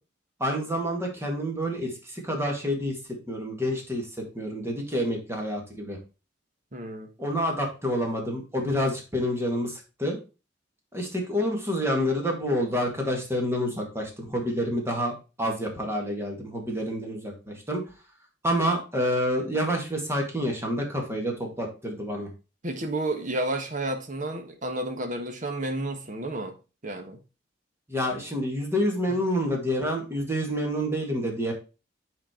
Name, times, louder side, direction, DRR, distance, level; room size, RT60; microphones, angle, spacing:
voice 1, 0.4-3.0 3.3-6.0 7.2-10.2 10.9-15.1 15.4-17.8 18.4-22.3 27.9-31.5, equal, 15° right, 2.0 m, -28 dB
voice 2, 6.7-7.1 22.6-26.5 26.8-27.2, right 1 dB, 45° right, 1.3 m, -31 dB
7.5 x 4.4 x 4.4 m
head